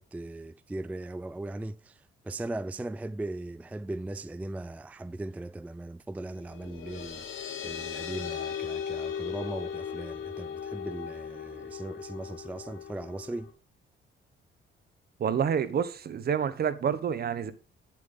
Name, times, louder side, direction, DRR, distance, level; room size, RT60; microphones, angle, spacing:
voice 1, 0.0-13.5, right 2 dB, 5° right, 0.4 m, -38 dB
sound 1, 6.3-13.5, left 7 dB, 85° left, 2.6 m, -37 dB
voice 2, 15.2-17.5, right 7 dB, 50° right, 1.1 m, -28 dB
9.7 x 7.4 x 3.7 m
cardioid pair, 90°, 20 cm